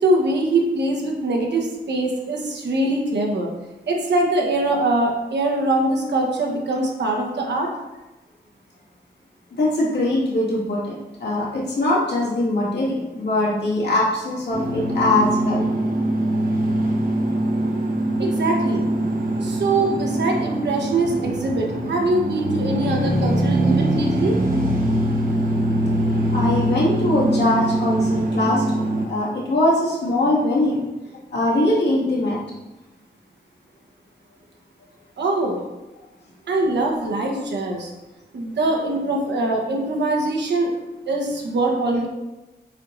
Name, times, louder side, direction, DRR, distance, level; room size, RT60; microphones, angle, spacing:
voice 1, 0.0-3.5 3.9-7.7 18.2-18.9 19.4-24.4 35.2-35.6 36.5-37.9 38.3-40.7 41.1-42.1, right 2 dB, 85° right, 0 dB, 1.2 m, -22 dB
voice 2, 9.5-15.6 26.3-30.8 31.3-32.4, left 1 dB, 80° left, -6 dB, 2.1 m, -22 dB
sound 1, 14.5-29.1, right 1 dB, 55° right, 1.1 m, -22 dB
8.0 x 4.5 x 2.6 m, 1.1 s
wide cardioid pair, 90°, 18 cm